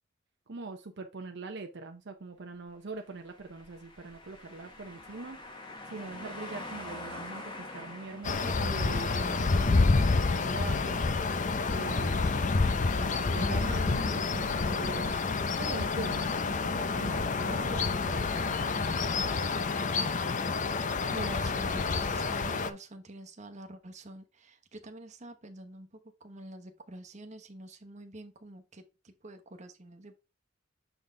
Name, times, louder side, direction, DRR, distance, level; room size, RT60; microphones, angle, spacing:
voice 1, 0.5-5.4 5.9-11.0 11.7-15.2 15.6-19.4, right 3 dB, 60° right, 0.7 m, -43 dB
sound 1, 3.3-10.0, left 2 dB, 25° left, 1.3 m, -45 dB
sound 2, 8.2-22.7, left 4 dB, 40° left, 0.5 m, -28 dB
voice 2, 21.1-25.9 26.2-30.2, right 1 dB, 35° right, 1.0 m, -46 dB
6.9 x 4.0 x 3.7 m
head